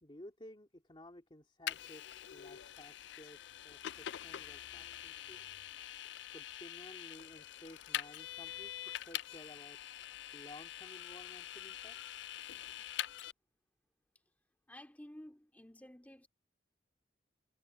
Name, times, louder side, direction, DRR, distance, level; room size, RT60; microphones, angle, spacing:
voice 1, 0.0-5.4 6.3-9.8 10.3-12.0, left 1 dB, 25° left, 2.2 m, -55 dB
Vehicle, 1.7-13.3, left 12 dB, 70° left, 0.4 m, -45 dB
voice 2, 14.7-16.3, left 1 dB, 10° left, 2.2 m, -53 dB
head